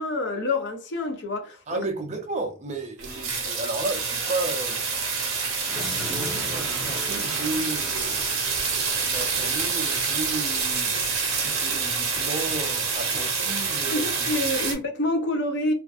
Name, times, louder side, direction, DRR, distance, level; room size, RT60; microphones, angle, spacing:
voice 1, 0.0-1.9 13.9-15.7, left 1 dB, 55° left, 0.6 m, -27 dB
voice 2, 1.7-4.8 6.1-8.4 9.0-11.0 11.3-14.3, right 2 dB, 30° right, 0.4 m, -33 dB
sound 1, 3.0-14.7, right 5 dB, 75° right, 0.7 m, -27 dB
sound 2, 5.4-10.3, right 1 dB, ahead, 0.7 m, -38 dB
2.5 x 2.4 x 2.3 m
head